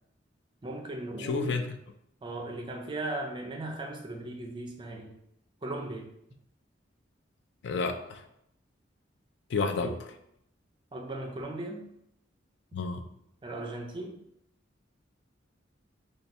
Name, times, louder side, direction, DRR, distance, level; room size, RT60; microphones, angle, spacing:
voice 1, 0.6-1.6 2.2-5.2 5.6-6.1 9.8-9.9 10.9-11.8 13.4-14.2, right 2 dB, 25° right, 2 dB, 0.4 m, -37 dB
voice 2, 1.2-1.8 7.6-8.3 9.5-10.1 12.7-13.1, left 4 dB, 60° left, 6 dB, 0.4 m, -31 dB
2.6 x 2.3 x 4.1 m, 0.76 s
head